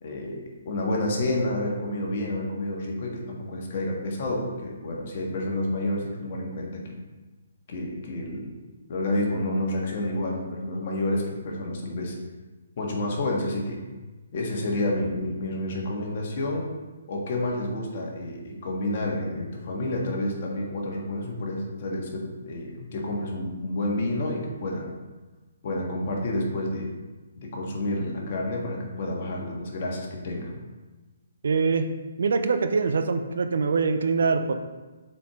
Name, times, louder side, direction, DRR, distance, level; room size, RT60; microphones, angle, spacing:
voice 1, 0.0-6.8 7.7-8.5 8.9-12.1 12.8-13.8 14.3-16.7 17.1-24.9 25.6-26.9 27.3-30.5, left 1 dB, 50° left, -1 dB, 1.5 m, -29 dB
voice 2, 31.4-31.9 32.2-34.5, right 4 dB, 65° right, 8 dB, 0.6 m, -23 dB
7.1 x 4.5 x 3.6 m, 1.2 s
figure-of-eight pair, 135°, 0 cm